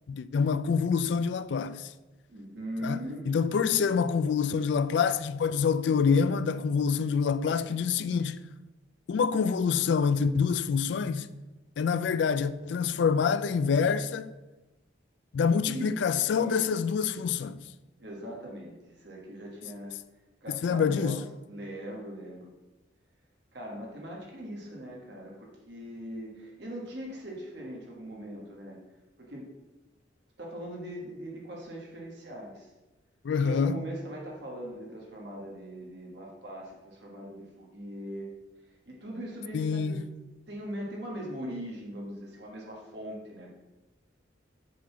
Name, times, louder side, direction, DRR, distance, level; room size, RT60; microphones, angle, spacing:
voice 1, 0.1-1.9 2.8-3.0 3.3-8.4 9.1-11.3 11.8-14.3 15.3-17.6 20.5-21.2 33.2-33.8 39.5-40.0, left 6 dB, 65° left, 0.3 m, -26 dB
voice 2, 2.3-3.3 15.7-15.9 16.3-16.7 18.0-19.9 20.4-22.5 23.5-28.8 29.2-29.5 30.4-32.7 33.4-38.3 38.8-40.0 40.5-43.5, equal, 60° right, 1.4 m, -40 dB
7.4 x 3.9 x 5.7 m
head